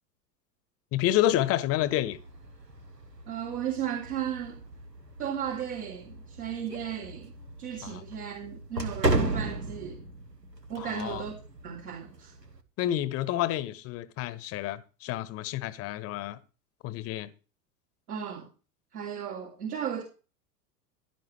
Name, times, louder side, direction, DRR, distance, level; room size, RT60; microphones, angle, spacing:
voice 1, 0.9-2.2 7.8-8.0 10.8-11.2 12.8-16.4 16.8-17.3, left 13 dB, 30° left, 1.0 m, -29 dB
sound 1, 1.7-12.6, right 2 dB, 90° right, 1.3 m, -36 dB
voice 2, 3.3-4.6 5.2-7.3 7.6-10.0 10.7-12.3 18.1-18.5 18.9-20.0, right 8 dB, 65° right, 3.1 m, -35 dB
16.0 x 11.0 x 3.3 m
figure-of-eight pair, 85°, 48 cm